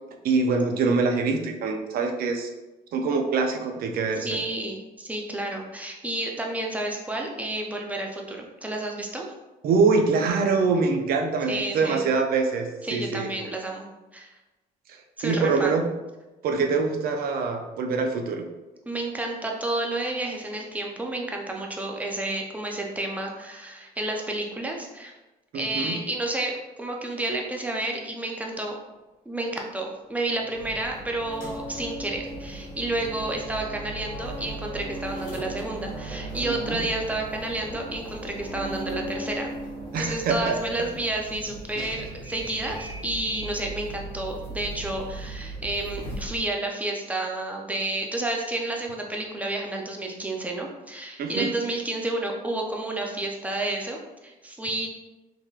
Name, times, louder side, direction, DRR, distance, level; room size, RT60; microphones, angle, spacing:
voice 1, 0.2-2.5 2.9-4.4 9.6-13.3 14.9-15.0 15.2-15.8 16.4-18.4 25.5-26.0 36.4-36.8 39.9-40.6 41.8-41.9 51.2-51.5, right 4 dB, 60° right, 4 dB, 0.5 m, -24 dB
voice 2, 4.2-9.2 11.5-12.0 12.8-13.9 14.1-14.3 15.2-15.8 18.9-25.1 25.5-28.8 29.3-39.5 40.0-54.9, right 2 dB, 10° right, 0 dB, 0.5 m, -30 dB
sound 1, 30.4-42.1, equal, 25° left, 1.0 m, -39 dB
sound 2, 30.5-46.4, right 2 dB, 80° left, 1.5 m, -40 dB
3.7 x 2.9 x 2.4 m, 1.1 s
cardioid pair, 110°, 17 cm